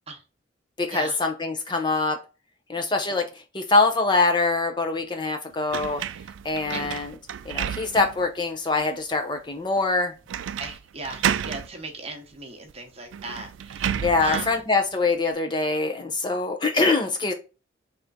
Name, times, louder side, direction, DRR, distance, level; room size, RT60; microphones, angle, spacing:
voice 1, 0.8-2.2 2.7-3.2 3.5-6.0 6.4-7.1 7.5-10.1 14.0-17.3, left 3 dB, 25° left, 5 dB, 0.5 m, -24 dB
sound 1, 5.7-8.3 8.8-8.9 10.3-10.8 11.0-11.7 12.7-12.8 13.1-14.6, right 9 dB, 80° right, 0.3 m, -30 dB
voice 2, 10.6-14.6, right 3 dB, 30° right, 4 dB, 0.9 m, -38 dB
3.5 x 3.4 x 4.0 m, 0.32 s
head